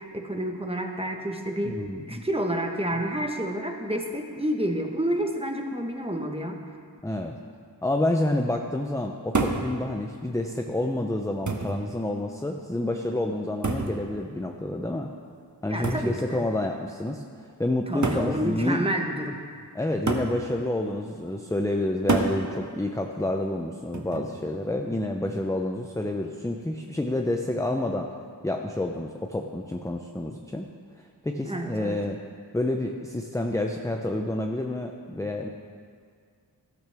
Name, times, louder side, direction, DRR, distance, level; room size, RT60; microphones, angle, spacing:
voice 1, 0.0-1.8 2.1-6.6 15.7-16.4 17.9-19.4 31.4-32.0, right 1 dB, 15° right, 2 dB, 1.3 m, -29 dB
voice 2, 1.6-2.2 7.0-7.4 7.8-15.1 15.6-18.9 19.7-28.1 28.4-30.7 31.2-32.2 32.5-35.5, left 1 dB, 5° left, 3 dB, 0.6 m, -29 dB
sound 1, 9.3-9.7 10.7-10.8 11.5-11.8 13.6-14.0 15.8-16.1 17.2-17.3 18.0-18.3 20.1-20.4 22.1-22.4 23.9-24.3, right 3 dB, 40° right, 1.2 m, -27 dB
14.0 x 12.5 x 3.5 m, 2.1 s
wide cardioid pair, 60°, 44 cm